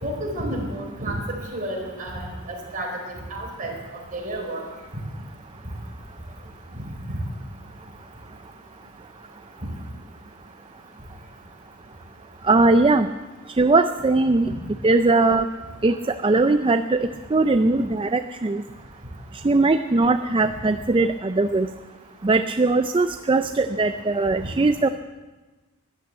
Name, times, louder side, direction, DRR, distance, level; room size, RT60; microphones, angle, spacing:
voice 1, 0.0-2.9 3.3-3.7 4.1-4.6 6.8-7.2 14.4-14.6, right 1 dB, 40° right, -1 dB, 4.4 m, -31 dB
voice 2, 12.4-13.1 13.6-14.5 14.8-15.5 15.8-18.6 19.3-21.7 22.2-24.9, right 3 dB, 25° right, 9 dB, 0.4 m, -20 dB
14.5 x 11.5 x 8.3 m, 1.2 s
head